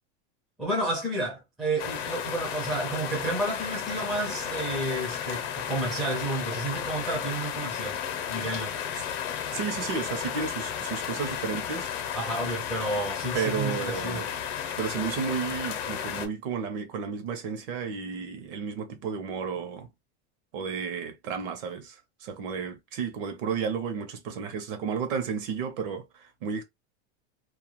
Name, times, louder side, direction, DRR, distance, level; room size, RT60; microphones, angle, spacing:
voice 1, 0.6-8.0 8.3-8.8 12.1-14.2, right 2 dB, ahead, 0.4 m, -31 dB
sound 1, 1.8-16.3, left 9 dB, 65° left, 0.7 m, -33 dB
voice 2, 9.5-11.9 13.3-14.3 14.8-19.9 20.5-26.6, right 6 dB, 55° right, 0.7 m, -32 dB
2.3 x 2.2 x 2.9 m
supercardioid pair, 180°, 33 cm